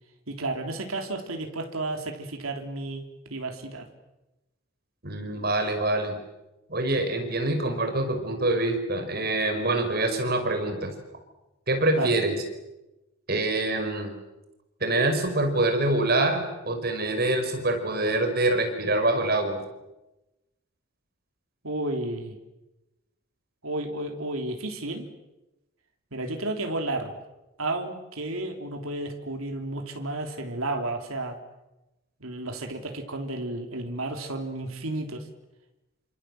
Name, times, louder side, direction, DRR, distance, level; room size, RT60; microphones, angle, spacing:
voice 1, 0.3-3.9 12.0-12.2 21.6-22.4 23.6-25.1 26.1-27.2 27.6-31.4 32.2-35.3, right 2 dB, 80° right, 4 dB, 3.5 m, -32 dB
voice 2, 5.0-6.2 6.7-10.9 11.7-12.4 13.3-14.1 14.8-19.6, right 2 dB, 45° right, 6 dB, 5.0 m, -25 dB
28.5 x 26.5 x 7.8 m, 0.99 s
head